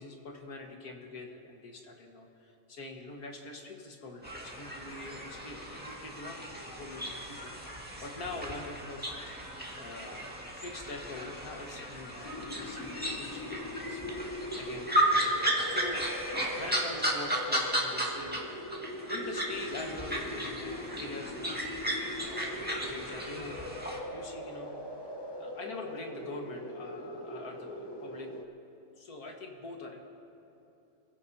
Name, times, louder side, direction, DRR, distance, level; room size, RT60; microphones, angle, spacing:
voice 1, 0.0-9.3 9.8-14.0 14.6-14.9 15.2-15.3 15.6-16.1 16.5-18.5 19.1-21.7 22.3-23.6 24.1-25.0 25.4-28.3 29.0-30.0, left 2 dB, 80° left, 1 dB, 2.1 m, -44 dB
sound 1, 4.2-18.4 18.7-24.0, right 1 dB, 5° right, 1.9 m, -34 dB
sound 2, 12.2-28.4, left 1 dB, 20° left, 0.7 m, -41 dB
26.5 x 16.0 x 2.8 m, 2.8 s
omnidirectional pair, 1.5 m